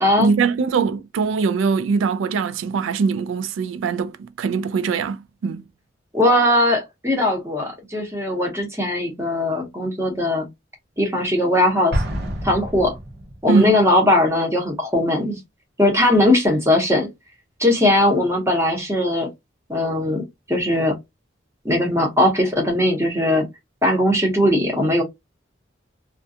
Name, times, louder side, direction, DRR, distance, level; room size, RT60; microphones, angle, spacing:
voice 1, 0.2-5.7 13.5-13.8, right 5 dB, 80° right, 0.3 m, -22 dB
voice 2, 6.1-10.4 11.0-12.0 12.4-12.9 13.4-15.4 15.8-17.1 17.6-19.3 19.7-21.0 21.6-23.5 23.8-25.0, left 1 dB, 15° right, 0.8 m, -19 dB
Explosion, 11.9-13.7, right 1 dB, 55° right, 0.7 m, -27 dB
2.4 x 2.2 x 2.6 m
head